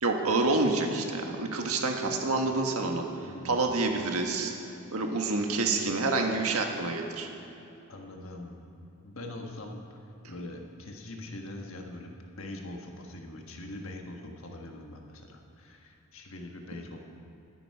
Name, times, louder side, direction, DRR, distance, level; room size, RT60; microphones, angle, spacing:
voice 1, 0.0-3.0 3.4-4.5 4.9-7.3, right 3 dB, 80° right, 3 dB, 1.6 m, -28 dB
voice 2, 3.2-3.7 5.9-6.0 7.4-7.6 7.9-8.6 9.0-17.0, left 1 dB, 65° left, 2 dB, 1.4 m, -43 dB
20.5 x 10.0 x 4.8 m, 2.9 s
head